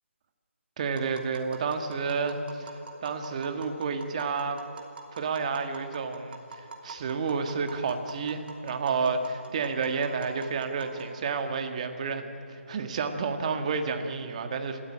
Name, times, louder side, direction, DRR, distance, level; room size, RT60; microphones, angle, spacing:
voice 1, 0.8-4.6 5.1-14.9, right 5 dB, 30° right, 6 dB, 1.6 m, -30 dB
Tap, 0.9-11.4, right 3 dB, 45° right, 2.9 m, -46 dB
29.0 x 13.5 x 8.9 m, 2.7 s
figure-of-eight pair, 165°, 7 cm